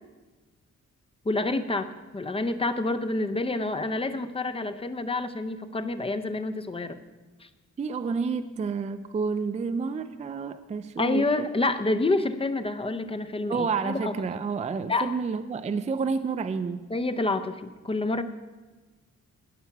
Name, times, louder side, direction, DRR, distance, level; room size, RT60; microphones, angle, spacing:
voice 1, 1.2-7.0 7.4-7.5 11.0-14.1 14.9-15.1 16.9-18.2, left 2 dB, 20° left, 9 dB, 0.6 m, -28 dB
voice 2, 7.8-11.5 13.5-16.8, right 5 dB, 25° right, 11 dB, 0.4 m, -29 dB
16.5 x 5.8 x 5.8 m, 1.2 s
wide cardioid pair, 125°, 29 cm